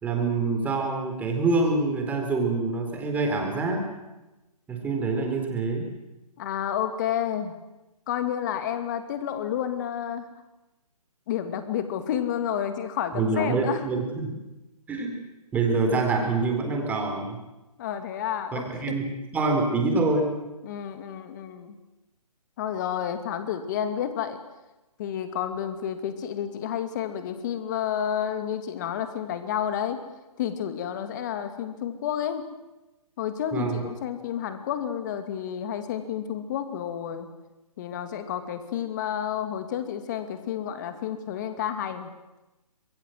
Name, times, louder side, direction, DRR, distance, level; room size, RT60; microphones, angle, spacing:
voice 1, 0.0-3.9 4.7-5.9 13.1-14.3 14.9-15.1 15.5-17.4 18.5-20.3 33.5-33.8, right 3 dB, 10° right, 2 dB, 3.8 m, -26 dB
voice 2, 6.4-7.5 8.1-10.3 11.3-13.8 17.8-19.0 20.6-21.8 22.6-24.4 25.0-30.0 30.4-32.4 33.2-37.3 37.8-42.1, left 9 dB, 30° left, 9 dB, 2.5 m, -30 dB
27.0 x 22.0 x 7.9 m, 1.0 s
hypercardioid pair, 155°, 20 cm